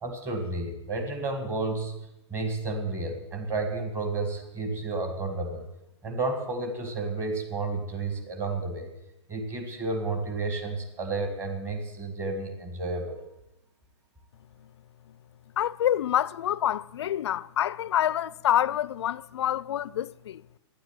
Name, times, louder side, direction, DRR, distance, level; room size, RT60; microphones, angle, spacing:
voice 1, 0.0-2.0 2.3-5.7 6.0-8.9 9.3-13.2, right 3 dB, 15° right, 1.8 m, -31 dB
voice 2, 15.6-20.4, left 11 dB, 65° left, 0.5 m, -27 dB
12.0 x 9.8 x 8.9 m
hypercardioid pair, 155°, 15 cm